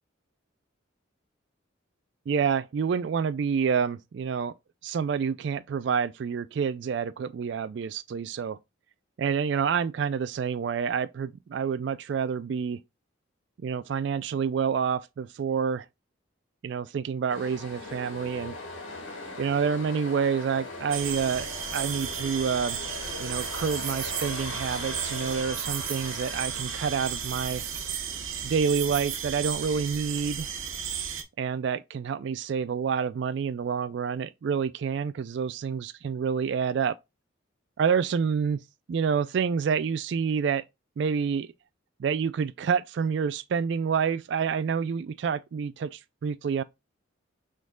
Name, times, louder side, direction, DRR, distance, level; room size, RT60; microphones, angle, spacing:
voice 1, 2.3-4.5 4.8-8.6 9.2-12.8 13.6-15.9 16.6-18.5 19.4-22.8 23.2-27.6 28.4-30.5 31.4-36.9 37.8-38.6 38.9-40.6 41.0-41.5 42.0-46.6, right 6 dB, 60° right, 0.3 m, -28 dB
sound 1, 17.3-30.2, left 2 dB, 80° left, 1.9 m, -41 dB
sound 2, 20.9-31.2, right 8 dB, 85° right, 0.9 m, -34 dB
6.2 x 3.8 x 2.2 m
head